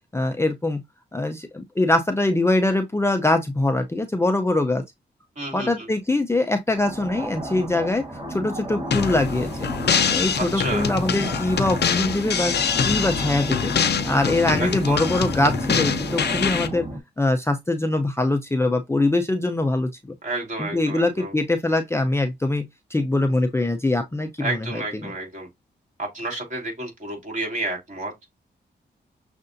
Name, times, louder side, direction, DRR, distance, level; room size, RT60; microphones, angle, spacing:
voice 1, 0.1-0.8 1.1-4.8 5.5-9.5 10.1-12.5 12.8-13.7 14.0-16.9 17.2-20.2 20.6-22.6 22.9-25.1, left 2 dB, 15° left, 0.6 m, -23 dB
voice 2, 5.4-5.9 10.4-10.9 14.6-15.0 20.2-21.3 24.4-25.5 26.0-28.1, right 2 dB, 40° right, 2.7 m, -30 dB
sound 1, 6.7-17.0, right 1 dB, 20° right, 1.5 m, -32 dB
sound 2, 8.9-16.7, left 7 dB, 65° left, 0.7 m, -25 dB
6.5 x 2.6 x 2.6 m
cardioid pair, 75°, 19 cm